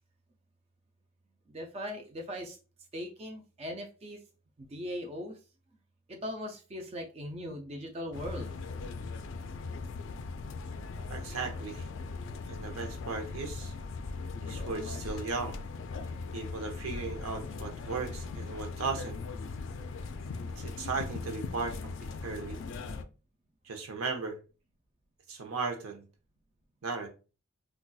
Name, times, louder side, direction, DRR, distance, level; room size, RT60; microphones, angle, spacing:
voice 1, 1.5-2.6 2.9-4.2 4.6-5.4 6.1-8.7, equal, 30° right, 0.4 m, -39 dB
sound 1, 8.1-23.0, left 4 dB, 60° left, 0.3 m, -39 dB
voice 2, 11.1-11.9 12.5-13.7 14.4-15.6 16.3-19.2 20.6-21.9 22.2-22.6 23.6-24.4 25.3-26.1 26.8-27.1, right 4 dB, 90° right, 0.7 m, -36 dB
3.9 x 2.3 x 2.3 m
head